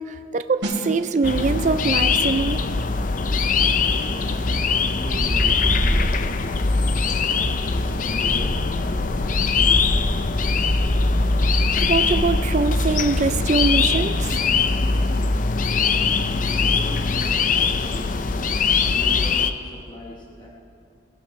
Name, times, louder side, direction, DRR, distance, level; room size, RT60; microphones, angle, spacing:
voice 1, 0.1-2.6 11.8-14.4, right 4 dB, 40° right, 9 dB, 0.4 m, -23 dB
sound 1, 0.6-11.1 11.4-11.6, equal, 75° right, 2.8 m, -40 dB
sound 2, 1.2-19.5, left 4 dB, 45° left, 0.5 m, -22 dB
voice 2, 3.3-7.1 7.6-10.2 16.4-18.2 18.8-20.5, left 1 dB, 25° left, -2 dB, 1.2 m, -40 dB
sound 3, 5.1-13.3, equal, ahead, 0.8 m, -27 dB
19.0 x 16.5 x 3.2 m, 2.5 s
head